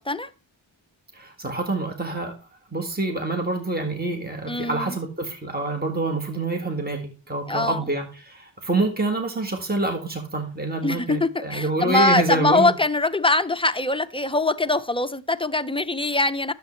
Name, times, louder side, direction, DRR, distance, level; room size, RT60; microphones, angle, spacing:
voice 1, 1.1-2.3 2.7-12.8, right 2 dB, 20° right, 1.6 m, -26 dB
voice 2, 4.4-5.0 7.5-7.8 10.8-16.5, left 2 dB, 15° left, 0.4 m, -23 dB
11.0 x 7.1 x 3.2 m
wide cardioid pair, 45°, 46 cm